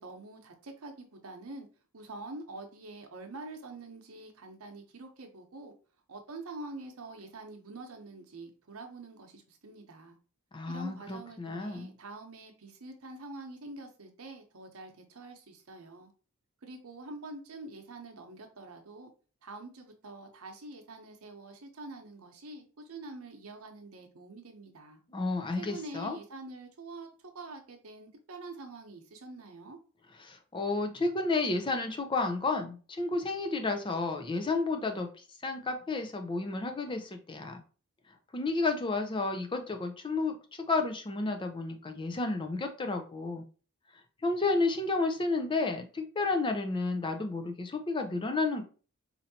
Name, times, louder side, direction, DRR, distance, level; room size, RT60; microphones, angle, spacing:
voice 1, 0.0-1.7 1.9-5.7 6.1-10.2 10.7-16.1 16.6-19.1 19.4-25.0 25.5-29.8, right 2 dB, 80° right, 0.8 m, -46 dB
voice 2, 10.5-11.9 25.1-26.2 30.2-35.1 35.4-37.6 38.3-40.4 40.7-43.4 44.2-48.6, left 3 dB, 25° left, 0.4 m, -31 dB
4.3 x 2.7 x 2.7 m
head